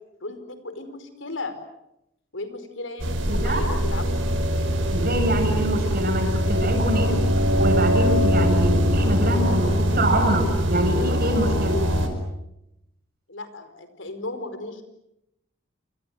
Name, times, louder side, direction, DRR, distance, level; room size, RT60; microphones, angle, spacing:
voice 1, 0.2-1.6 2.3-4.1 13.3-14.8, left 2 dB, 80° left, 10 dB, 4.8 m, -35 dB
sound 1, 3.0-12.1, equal, 80° right, 5.2 m, -22 dB
voice 2, 3.3-3.6 4.9-11.8, right 1 dB, 50° right, 5 dB, 7.4 m, -25 dB
29.0 x 26.5 x 7.9 m, 0.85 s
head